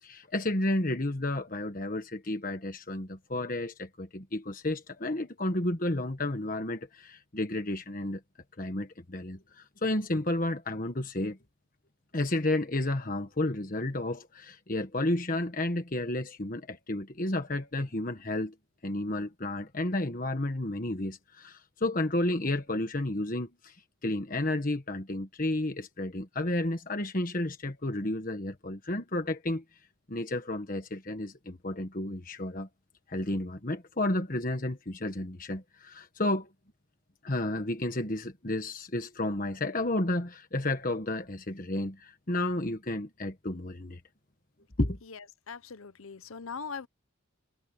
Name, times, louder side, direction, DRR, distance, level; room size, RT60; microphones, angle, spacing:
voice 1, 0.0-8.2 8.6-11.4 12.1-18.5 18.8-23.8 24.0-29.6 30.1-32.7 33.1-36.5 37.2-44.0 44.8-45.0, left 1 dB, 40° left, 1.4 m, -32 dB
voice 2, 45.5-46.9, left 5 dB, 80° left, 0.9 m, -40 dB
head